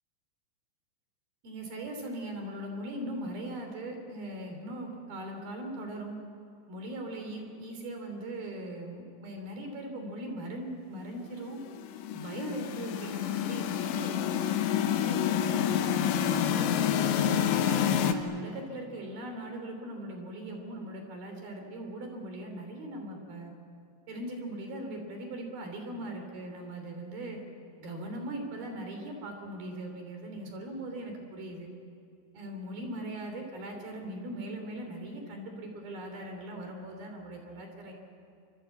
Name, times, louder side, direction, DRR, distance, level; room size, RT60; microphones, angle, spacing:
voice 1, 1.4-6.2 6.7-11.6 12.1-17.5 18.1-23.5 24.1-27.4 27.8-31.7 32.3-37.9, right 1 dB, 55° right, 4 dB, 4.6 m, -40 dB
sound 1, 11.7-18.1, left 9 dB, 75° left, 3.2 m, -28 dB
27.0 x 25.5 x 8.3 m, 2.4 s
omnidirectional pair, 5.6 m